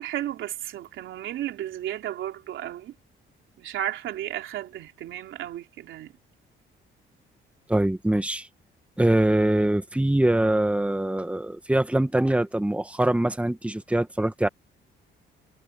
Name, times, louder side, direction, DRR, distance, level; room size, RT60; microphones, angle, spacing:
voice 1, 0.0-2.9 3.6-6.1, right 12 dB, 80° right, 3.1 m, -33 dB
voice 2, 7.7-8.5 9.0-14.5, right 1 dB, 5° right, 1.7 m, -23 dB
cardioid pair, 90°, 20 cm